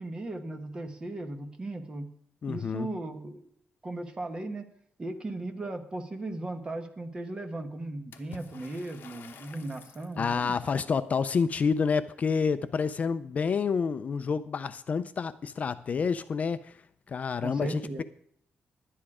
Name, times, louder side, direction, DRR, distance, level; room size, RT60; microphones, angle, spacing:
voice 1, 0.0-2.1 2.5-3.5 3.8-4.6 5.0-10.6 17.4-18.0, right 2 dB, 20° right, 5 dB, 1.1 m, -37 dB
voice 2, 2.4-2.9 10.2-16.8 17.1-18.0, left 5 dB, 40° left, 12 dB, 0.4 m, -28 dB
Water / Splash splatter, 8.1-10.2, left 5 dB, 60° left, 1.1 m, -49 dB
11.5 x 10.0 x 4.8 m, 0.68 s
wide cardioid pair, 165°, 4 cm